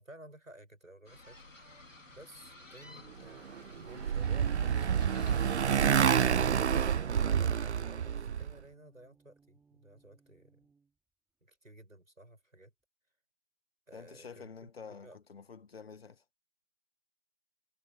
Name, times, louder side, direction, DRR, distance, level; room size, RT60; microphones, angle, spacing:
voice 1, 0.0-5.3 5.9-10.7 11.4-12.7 13.9-15.2, right 1 dB, 90° right, 6.8 m, -55 dB
sound 1, 1.1-6.3, left 2 dB, 75° left, 4.6 m, -53 dB
sound 2, 1.6-11.0, right 5 dB, 5° right, 3.3 m, -69 dB
Motorcycle, 3.5-8.5, right 8 dB, 60° right, 0.5 m, -28 dB
voice 2, 13.9-16.2, left 5 dB, 50° left, 1.7 m, -49 dB
figure-of-eight pair, 150°, 38 cm